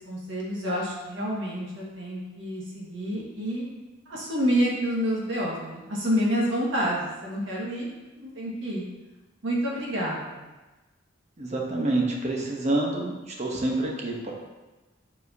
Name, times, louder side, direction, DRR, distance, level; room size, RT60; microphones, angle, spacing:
voice 1, 0.1-3.7 4.1-7.9 8.1-8.8 9.4-10.4, equal, 75° right, -4 dB, 1.6 m, -28 dB
voice 2, 11.4-14.3, right 2 dB, 35° right, -1 dB, 1.0 m, -27 dB
7.2 x 4.9 x 2.8 m, 1.1 s
head